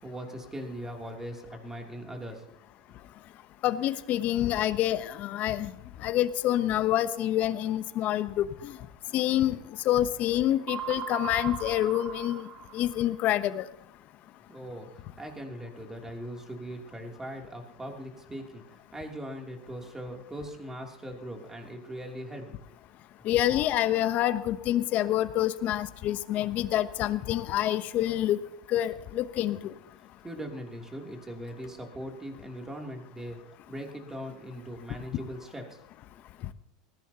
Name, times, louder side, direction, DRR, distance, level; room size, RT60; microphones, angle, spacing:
voice 1, 0.0-2.6 14.5-22.6 30.2-33.4 33.7-35.8, equal, 15° right, 2 dB, 3.0 m, -40 dB
voice 2, 3.6-5.7 6.0-8.7 9.1-9.6 9.9-12.5 12.7-13.6 23.2-28.4 28.7-29.6, left 13 dB, 50° left, 13 dB, 0.9 m, -27 dB
sound 1, 10.7-13.3, right 8 dB, 30° right, 1.2 m, -38 dB
20.0 x 15.5 x 2.9 m, 0.81 s
hypercardioid pair, 105°, 4 cm